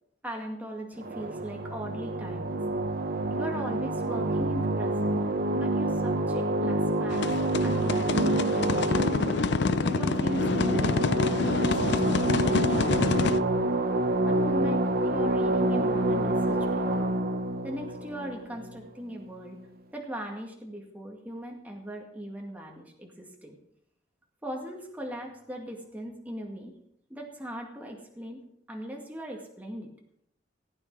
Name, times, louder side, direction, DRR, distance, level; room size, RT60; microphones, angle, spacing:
voice 1, 0.2-2.6 3.4-5.3 5.5-7.3 7.6-9.1 9.9-13.6 14.2-17.1 17.6-19.6 19.9-23.6 24.4-26.7 27.1-28.4 28.7-29.9, equal, 10° right, 0 dB, 2.1 m, -39 dB
sound 1, 1.0-19.1, right 1 dB, 55° right, 1.0 m, -27 dB
sound 2, 7.1-13.4, left 4 dB, 65° left, 0.5 m, -28 dB
16.5 x 8.8 x 4.8 m, 0.73 s
head